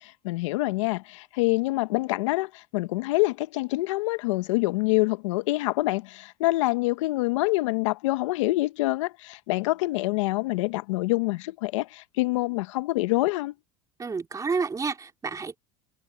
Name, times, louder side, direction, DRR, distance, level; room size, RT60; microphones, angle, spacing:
voice 1, 0.0-13.5, left 21 dB, 80° left, 1.0 m, -26 dB
voice 2, 14.0-15.6, right 4 dB, 20° right, 3.5 m, -30 dB
supercardioid pair, 95°, 16 cm